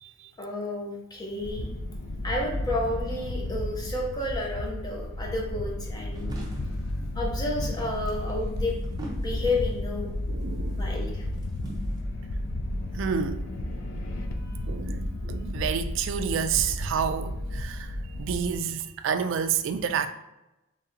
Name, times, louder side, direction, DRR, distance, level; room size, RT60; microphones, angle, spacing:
voice 1, 0.4-1.7 2.2-6.4 7.1-8.8 9.2-10.1 10.7-11.2 14.5-14.6, left 2 dB, 20° left, 0.8 m, -31 dB
sound 1, 1.4-18.5, left 1 dB, 75° left, 0.5 m, -32 dB
sound 2, 6.2-6.9 7.6-9.8 10.4-10.7 11.2-12.0, right 1 dB, 20° right, 0.7 m, -41 dB
voice 2, 10.3-10.8 12.9-13.5 14.7-20.1, right 7 dB, 65° right, 0.3 m, -29 dB
3.2 x 2.7 x 3.7 m
head